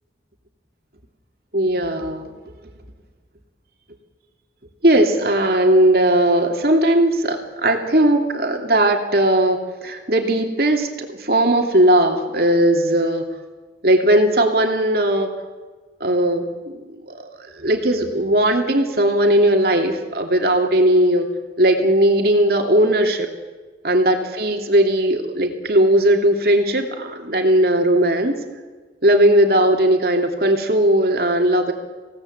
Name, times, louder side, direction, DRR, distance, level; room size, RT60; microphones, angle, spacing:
voice 1, 1.5-2.3 4.8-13.3 13.8-15.3 16.0-21.3 21.6-23.3 23.8-28.4 29.0-31.7, right 1 dB, 55° right, 3 dB, 2.9 m, -18 dB
27.0 x 18.0 x 8.1 m, 1.3 s
head